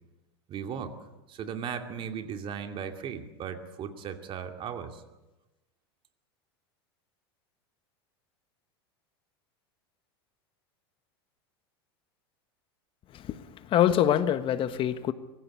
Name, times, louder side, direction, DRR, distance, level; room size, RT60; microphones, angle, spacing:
voice 1, 0.5-0.9 1.3-5.0, right 7 dB, 40° right, 6 dB, 2.6 m, -37 dB
voice 2, 13.7-15.1, left 10 dB, 40° left, 12 dB, 1.2 m, -24 dB
24.5 x 15.0 x 8.4 m, 1.0 s
hypercardioid pair, 95°, 13 cm